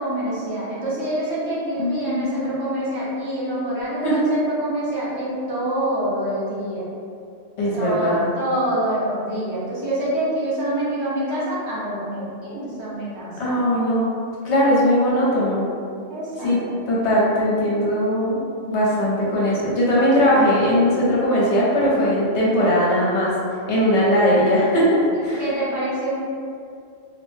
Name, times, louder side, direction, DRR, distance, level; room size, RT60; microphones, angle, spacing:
voice 1, 0.0-6.9 7.7-13.7 16.1-16.8 19.9-20.0 25.4-26.2, right 1 dB, 60° right, -8 dB, 1.0 m, -26 dB
voice 2, 1.8-2.5 4.0-4.2 7.6-8.3 13.4-14.1 14.4-15.7 16.4-16.6 16.9-18.4 18.7-23.3 23.7-25.4, equal, 65° left, -6 dB, 0.9 m, -19 dB
2.8 x 2.1 x 3.1 m, 2.3 s
omnidirectional pair, 1.4 m